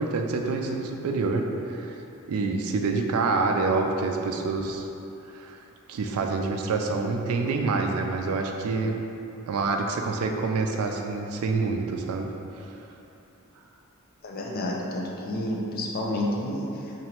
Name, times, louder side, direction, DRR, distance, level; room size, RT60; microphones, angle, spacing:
voice 1, 0.0-2.0 2.3-4.9 5.3-5.6 5.9-9.1 9.5-12.3, right 3 dB, 90° right, 3 dB, 0.4 m, -27 dB
voice 2, 14.2-16.9, left 1 dB, 45° left, -2 dB, 0.5 m, -30 dB
3.0 x 2.6 x 4.3 m, 2.9 s
head